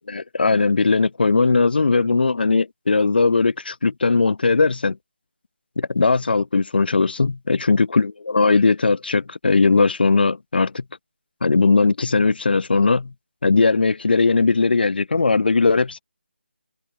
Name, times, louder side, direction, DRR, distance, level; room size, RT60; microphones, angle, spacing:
voice 1, 0.1-5.0 5.8-10.8 11.4-13.1 13.4-16.0, left 4 dB, 55° left, 1.1 m, -19 dB
open air
figure-of-eight pair, 155°, 6 cm